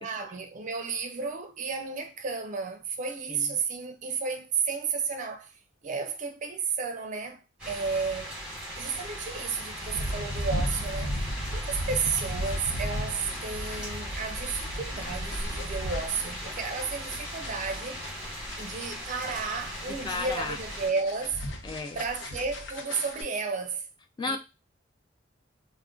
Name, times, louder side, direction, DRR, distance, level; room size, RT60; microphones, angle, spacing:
voice 1, 0.0-5.5 5.8-8.3 8.8-11.2 11.5-18.0 18.6-21.4 21.9-23.9 24.2-24.4, right 5 dB, 40° right, 0.5 m, -32 dB
sound 1, 7.6-20.9, equal, 5° right, 1.1 m, -38 dB
sound 2, 9.8-23.2, equal, 65° left, 0.7 m, -36 dB
voice 2, 19.9-20.6 21.6-22.0 24.2-24.4, left 4 dB, 25° left, 0.3 m, -33 dB
2.4 x 2.1 x 3.6 m
head